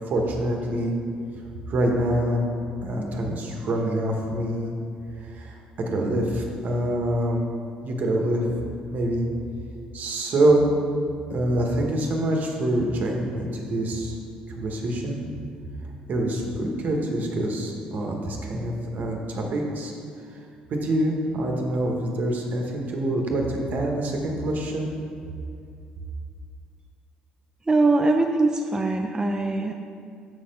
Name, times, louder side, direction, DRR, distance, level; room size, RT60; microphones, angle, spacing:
voice 1, 0.1-0.9 1.7-2.4 2.8-4.7 5.3-5.6 5.9-7.4 7.8-8.4 8.9-9.2 9.9-10.6 11.3-14.1 14.5-15.3 16.1-19.9 20.8-24.9, right 1 dB, 55° right, 1 dB, 1.2 m, -25 dB
voice 2, 27.7-29.7, right 2 dB, 20° right, 3 dB, 0.4 m, -22 dB
6.9 x 4.3 x 5.2 m, 2.4 s
supercardioid pair, 65°, 3 cm